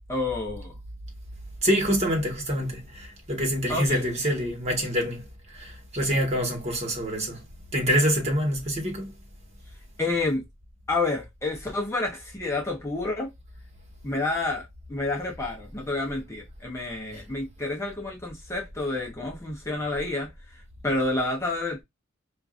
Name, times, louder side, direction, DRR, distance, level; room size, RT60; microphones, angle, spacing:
voice 1, 0.1-0.7 3.7-4.0 10.0-10.4 10.9-13.3 14.0-20.3 20.8-21.8, left 2 dB, 15° left, 0.7 m, -29 dB
voice 2, 1.6-5.2 5.5-7.4 7.7-9.1, equal, 30° right, 1.3 m, -26 dB
4.5 x 2.4 x 2.4 m
head